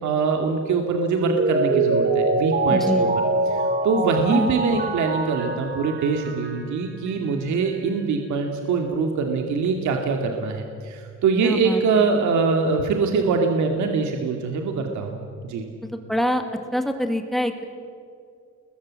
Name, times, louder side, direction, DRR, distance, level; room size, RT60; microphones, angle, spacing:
voice 1, 0.0-3.1 3.5-15.2 15.4-15.7, right 4 dB, 75° right, 3 dB, 2.4 m, -23 dB
Mallet percussion, 1.2-6.7 7.1-7.2, right 3 dB, 35° right, 3.2 m, -24 dB
voice 2, 2.7-3.1 4.3-4.5 11.4-12.0 15.9-16.4 16.7-17.6, equal, ahead, 5 dB, 2.1 m, -25 dB
30.0 x 21.5 x 7.6 m, 2.3 s
cardioid pair, 160°, 29 cm